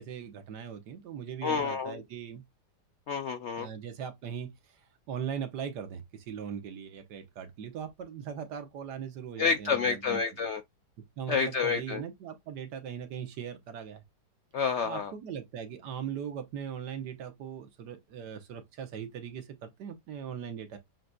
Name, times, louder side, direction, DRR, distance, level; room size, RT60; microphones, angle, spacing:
voice 1, 0.0-2.4 3.6-4.8 5.1-10.2 11.2-14.0 14.8-20.8, right 8 dB, 90° right, 1.5 m, -39 dB
voice 2, 1.4-2.0 3.1-3.7 9.4-10.6 11.3-12.0 14.5-15.1, left 5 dB, 75° left, 0.6 m, -29 dB
7.4 x 2.6 x 2.2 m
omnidirectional pair, 1.8 m